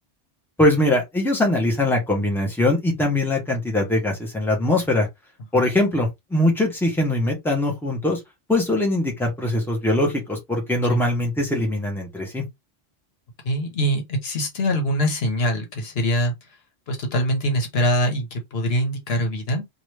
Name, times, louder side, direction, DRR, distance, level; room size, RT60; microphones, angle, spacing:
voice 1, 0.6-5.1 5.5-8.2 8.5-12.4, left 1 dB, ahead, 1.0 m, -22 dB
voice 2, 13.4-16.3 16.9-19.6, equal, 75° left, 1.2 m, -23 dB
2.9 x 2.6 x 3.2 m
omnidirectional pair, 1.1 m